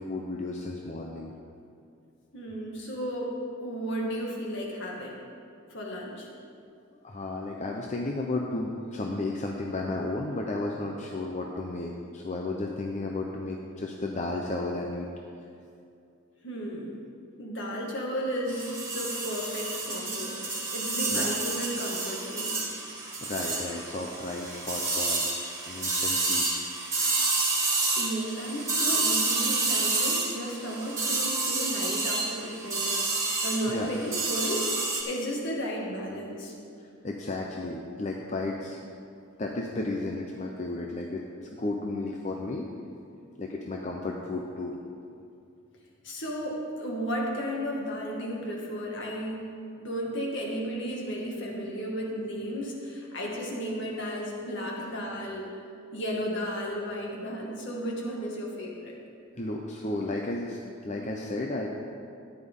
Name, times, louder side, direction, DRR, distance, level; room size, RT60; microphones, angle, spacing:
voice 1, 0.0-1.3 7.0-15.1 21.1-21.3 23.2-25.2 25.7-26.7 33.7-33.9 36.8-38.8 39.4-41.2 41.6-42.7 43.4-44.8 59.3-61.7, left 2 dB, 35° left, 0 dB, 0.7 m, -33 dB
voice 2, 2.3-3.3 3.6-5.2 5.7-6.3 16.4-17.0 17.4-20.3 20.7-22.6 28.0-33.0 33.4-34.7 35.1-36.5 46.0-49.4 49.7-55.5 55.9-59.0, equal, 60° left, -2 dB, 2.1 m, -33 dB
sound 1, 18.5-35.0, right 3 dB, 15° right, 1.8 m, -29 dB
13.5 x 10.0 x 3.7 m, 2.5 s
head